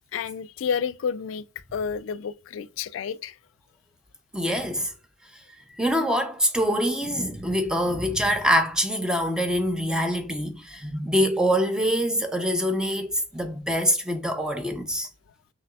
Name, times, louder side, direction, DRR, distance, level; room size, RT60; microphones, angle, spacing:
voice 1, 0.1-1.4 1.7-3.4, left 7 dB, 80° left, 0.3 m, -30 dB
voice 2, 4.3-4.9 5.8-15.1, equal, 5° right, 0.6 m, -24 dB
5.8 x 3.0 x 2.4 m
head